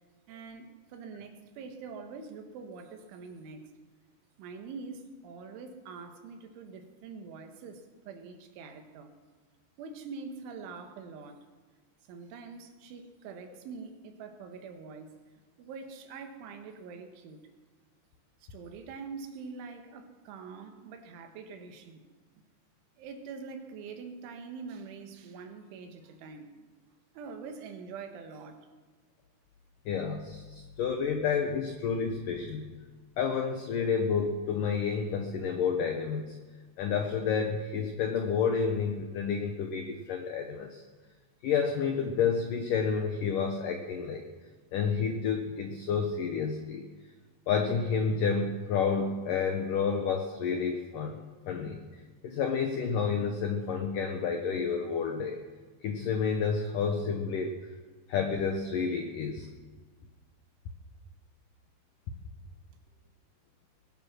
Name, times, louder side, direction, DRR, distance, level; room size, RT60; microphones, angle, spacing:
voice 1, 0.3-3.7 4.4-9.1 9.8-11.5 12.1-15.1 15.6-17.5 18.4-22.0 23.0-26.7 27.2-28.7, right 5 dB, 85° right, 5 dB, 3.9 m, -44 dB
voice 2, 29.9-32.7 33.2-36.4 36.8-40.8 41.4-44.2 44.7-46.9 47.5-51.2 51.5-51.8 52.2-55.4 55.8-57.5 58.1-59.5, left 6 dB, 85° left, 4 dB, 1.9 m, -30 dB
21.0 x 10.5 x 6.2 m, 1.4 s
omnidirectional pair, 5.3 m